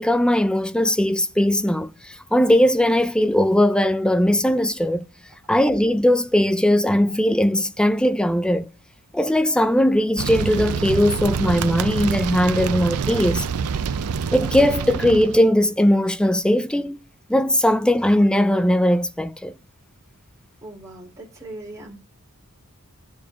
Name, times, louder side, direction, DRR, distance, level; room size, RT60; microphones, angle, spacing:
voice 1, 0.0-5.1 5.5-8.7 9.1-13.5 14.3-17.0 17.3-19.5, left 1 dB, 5° left, 0.4 m, -19 dB
sound 1, 10.2-15.4, right 6 dB, 85° right, 0.5 m, -26 dB
voice 2, 20.6-22.0, right 2 dB, 15° right, 3.3 m, -39 dB
14.5 x 7.0 x 2.4 m
head